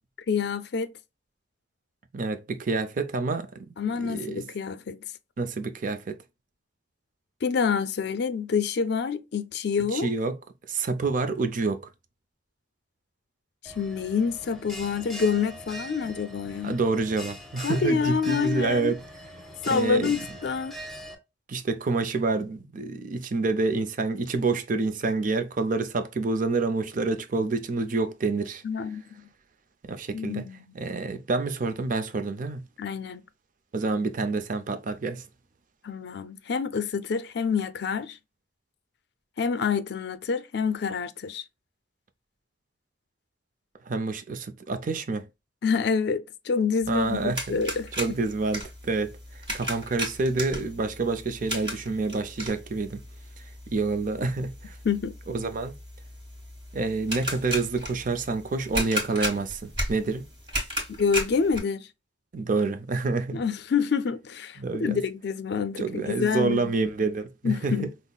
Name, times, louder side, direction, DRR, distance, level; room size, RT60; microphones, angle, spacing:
voice 1, 0.3-0.9 3.8-5.0 7.4-10.1 13.6-16.8 17.6-18.9 19.6-20.7 28.6-29.3 30.1-30.6 32.8-33.2 35.8-38.2 39.4-41.4 45.6-48.2 54.8-55.1 61.0-61.9 63.3-66.7 67.4-67.9, left 5 dB, 65° left, 0.4 m, -27 dB
voice 2, 2.1-3.5 4.0-4.4 5.4-6.2 9.9-10.4 10.7-11.9 16.6-19.0 19.7-20.3 21.5-28.6 29.8-30.5 30.7-32.6 33.7-35.2 43.9-45.3 46.9-47.6 48.0-53.0 53.7-54.8 55.3-55.7 56.7-60.3 62.3-63.4 64.6-65.0 65.8-67.9, right 3 dB, 45° right, 0.5 m, -28 dB
Bell, 13.6-21.1, equal, ahead, 0.8 m, -42 dB
sound 1, 46.8-61.6, equal, 30° right, 1.5 m, -36 dB
5.4 x 2.0 x 2.3 m
head